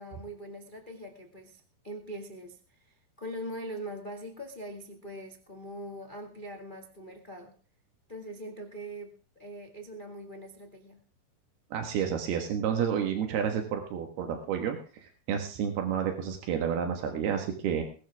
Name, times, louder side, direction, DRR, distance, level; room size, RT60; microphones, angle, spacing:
voice 1, 0.0-7.5 8.1-11.0, right 1 dB, 25° left, 2 dB, 1.2 m, -42 dB
voice 2, 11.7-17.8, right 8 dB, 85° right, 4 dB, 3.6 m, -30 dB
21.5 x 12.0 x 3.6 m, 0.40 s
omnidirectional pair, 4.4 m